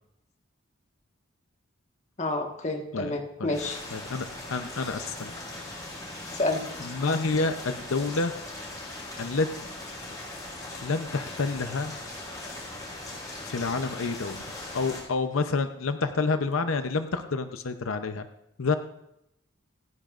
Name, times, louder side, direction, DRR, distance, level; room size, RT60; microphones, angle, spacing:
voice 1, 2.2-3.8 6.3-6.7, left 2 dB, 35° left, 2 dB, 1.5 m, -29 dB
voice 2, 2.9-3.6 3.9-5.3 6.8-8.3 9.2-9.7 10.8-12.0 13.4-18.3 18.6-18.8, left 3 dB, 85° left, 8 dB, 0.7 m, -29 dB
sound 1, 3.5-15.0, left 2 dB, 20° left, 4.8 m, -39 dB
27.5 x 10.0 x 2.5 m, 0.81 s
head